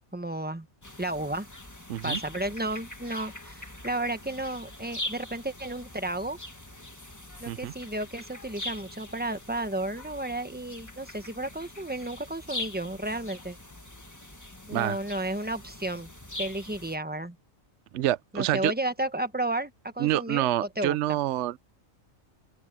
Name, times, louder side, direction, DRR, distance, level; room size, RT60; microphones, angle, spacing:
voice 1, 0.1-0.7 1.0-1.5 2.0-6.4 7.4-13.6 14.7-16.1 16.4-17.4 18.3-21.2, right 1 dB, 10° right, 1.1 m, -33 dB
sound 1, 0.8-17.0, left 1 dB, 15° left, 1.6 m, -42 dB
voice 2, 1.9-2.2 7.5-7.7 14.7-15.0 17.9-18.7 20.0-21.6, right 14 dB, 70° right, 0.8 m, -27 dB
open air
omnidirectional pair, 1.4 m